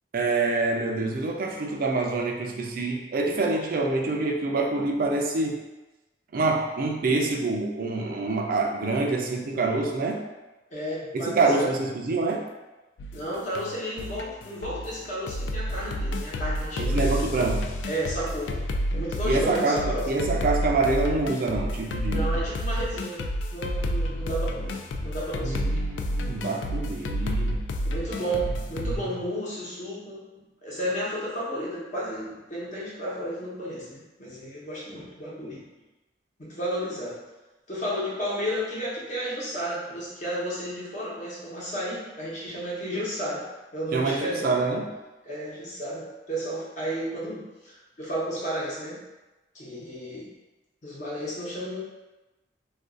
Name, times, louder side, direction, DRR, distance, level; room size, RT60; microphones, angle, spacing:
voice 1, 0.1-5.6 6.3-10.2 11.1-12.5 16.8-17.7 19.2-22.4 25.4-27.6 28.4-28.5 28.8-29.0 43.9-44.9, right 3 dB, 55° right, 1 dB, 0.4 m, -26 dB
voice 2, 10.7-11.7 13.1-17.0 17.8-18.6 18.9-20.1 22.1-23.2 23.5-25.8 27.8-30.2 30.6-35.6 36.4-37.2 37.7-44.5 45.2-49.0 49.5-50.3 50.8-51.8, equal, 45° left, -6 dB, 1.0 m, -32 dB
sound 1, 13.0-29.0, equal, 80° left, 0.3 m, -30 dB
2.5 x 2.3 x 3.7 m, 1.1 s
head